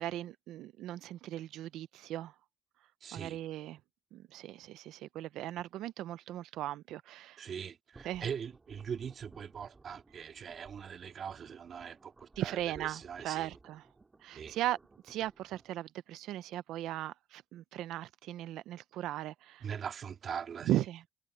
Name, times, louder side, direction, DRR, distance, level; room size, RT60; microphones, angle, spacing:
voice 1, 0.0-2.3 3.1-3.8 4.1-7.4 8.0-8.3 12.4-13.9 14.2-14.8 15.0-19.7 20.7-21.0, right 14 dB, 90° right, 0.7 m, -37 dB
voice 2, 3.0-3.4 7.4-13.5 14.3-14.6 19.6-20.8, right 7 dB, 55° right, 2.6 m, -41 dB
sound 1, 7.9-15.7, right 3 dB, 25° right, 3.1 m, -59 dB
cardioid pair, 90°, 0 cm